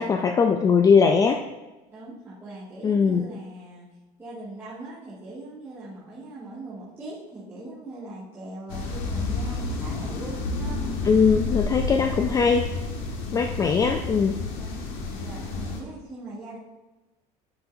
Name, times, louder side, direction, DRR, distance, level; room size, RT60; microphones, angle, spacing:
voice 1, 0.0-1.4 2.8-3.2 11.0-12.7 13.3-14.4, left 5 dB, 20° left, 5 dB, 0.4 m, -20 dB
voice 2, 1.9-3.9 4.2-10.8 13.1-13.4 14.5-14.8 15.2-16.6, right 2 dB, 15° right, -12 dB, 2.1 m, -40 dB
sound 1, 8.7-15.8, left 3 dB, 75° left, 1.5 m, -30 dB
9.5 x 6.8 x 2.7 m, 1.1 s
cardioid pair, 135°, 16 cm